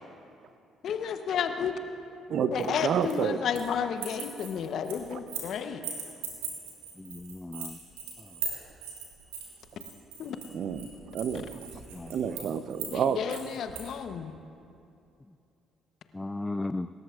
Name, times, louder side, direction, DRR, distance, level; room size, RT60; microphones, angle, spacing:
voice 1, 0.8-1.7 2.5-5.8 10.2-10.4 12.9-14.3, left 7 dB, 60° left, 8 dB, 0.9 m, -32 dB
voice 2, 2.3-3.4 5.1-5.2 10.5-11.6 12.1-13.2, right 7 dB, 60° right, 12 dB, 0.6 m, -29 dB
sound 1, 2.6-3.7 4.0-5.5 5.8-13.9, right 6 dB, 80° right, 2.3 m, -39 dB
voice 3, 7.0-7.8 8.2-8.4 11.9-12.2 16.1-16.9, left 2 dB, 15° left, 12 dB, 0.3 m, -36 dB
26.0 x 13.5 x 2.5 m, 2.6 s
hypercardioid pair, 50°, 0 cm